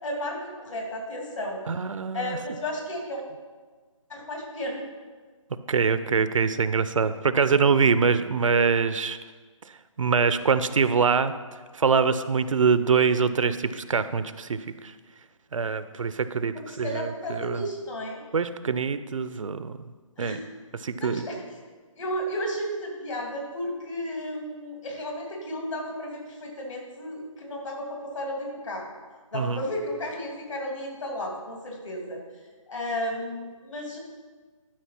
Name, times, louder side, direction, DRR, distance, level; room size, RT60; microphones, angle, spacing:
voice 1, 0.0-1.6 2.1-3.2 4.1-4.8 16.5-18.2 20.2-20.4 21.0-21.4 22.0-28.9 29.3-32.2 32.7-34.0, equal, 65° left, 0 dB, 2.9 m, -33 dB
voice 2, 1.7-2.4 5.7-9.2 10.0-11.3 11.7-14.9 15.5-17.7 18.3-19.9 20.2-20.4 20.8-21.2 29.3-29.6, right 5 dB, 70° right, 13 dB, 0.6 m, -24 dB
12.0 x 4.7 x 5.8 m, 1.4 s
hypercardioid pair, 165°, 17 cm